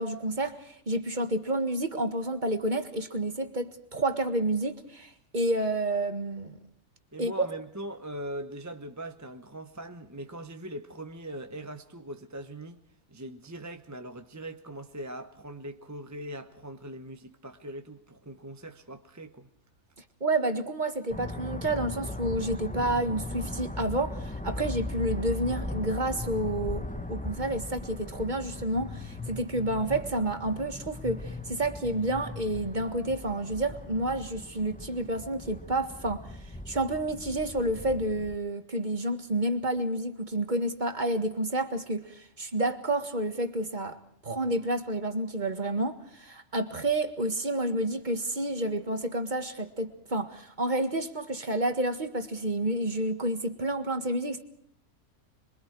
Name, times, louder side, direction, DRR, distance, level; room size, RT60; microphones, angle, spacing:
voice 1, 0.0-6.6 7.2-7.5 20.2-36.3 36.7-44.0 44.2-54.4, right 1 dB, 30° right, 1.8 m, -30 dB
voice 2, 7.1-12.8 13.1-19.5, right 1 dB, 15° right, 0.9 m, -41 dB
sound 1, 21.1-38.3, left 2 dB, 5° left, 0.7 m, -38 dB
27.0 x 23.5 x 4.7 m
omnidirectional pair, 1.5 m